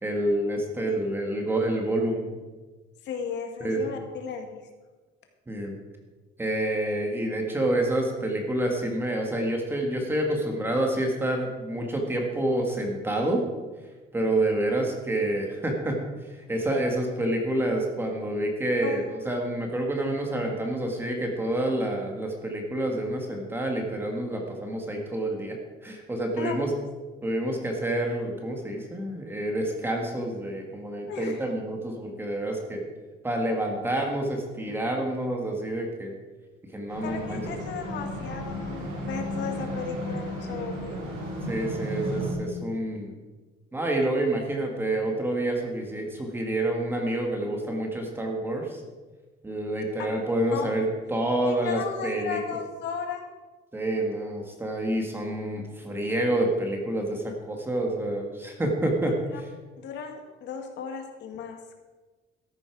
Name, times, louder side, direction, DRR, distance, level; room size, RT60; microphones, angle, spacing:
voice 1, 0.0-2.4 3.6-3.8 5.5-5.7 6.4-13.4 14.1-16.0 16.5-26.7 27.2-32.8 33.2-36.1 36.7-37.6 41.5-43.1 43.7-48.8 49.4-52.4 53.7-59.5, right 1 dB, 10° right, 1 dB, 1.8 m, -28 dB
voice 2, 3.0-4.6 18.8-19.1 26.4-26.6 31.1-31.4 37.0-41.0 50.5-50.7 51.5-53.2 59.3-59.4 59.8-61.6, left 6 dB, 60° left, 4 dB, 1.8 m, -35 dB
sound 1, 36.9-42.3, equal, 80° right, 4.2 m, -34 dB
13.5 x 11.0 x 4.7 m, 1.3 s
cardioid pair, 170°, 21 cm